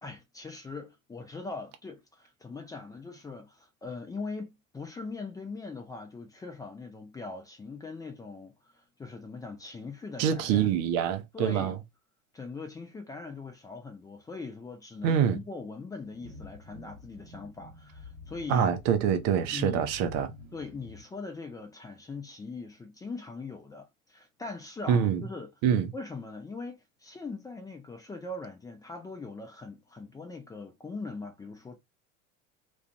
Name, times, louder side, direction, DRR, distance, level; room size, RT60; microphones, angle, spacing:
voice 1, 0.0-10.7 11.3-11.8 12.3-18.7 19.0-19.1 19.5-19.9 20.5-25.5 25.9-31.8, left 3 dB, 10° left, 0.4 m, -41 dB
voice 2, 10.2-11.8 15.0-15.4 18.5-20.3 24.9-25.2 25.6-25.9, right 8 dB, 40° right, 0.6 m, -25 dB
sound 1, 15.9-21.0, left 2 dB, 90° right, 0.8 m, -49 dB
2.4 x 2.3 x 2.5 m
figure-of-eight pair, 75°, 41 cm